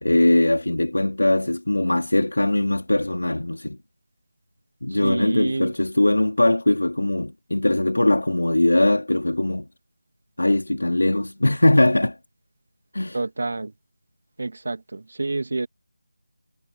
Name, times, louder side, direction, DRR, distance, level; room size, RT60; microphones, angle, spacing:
voice 1, 0.0-3.8 4.8-9.7 10.4-12.2 12.9-13.2, left 1 dB, 80° left, 2.7 m, -20 dB
voice 2, 4.9-5.7 13.1-13.7 14.4-15.7, right 3 dB, 60° right, 2.1 m, -28 dB
figure-of-eight pair, 165°, 0 cm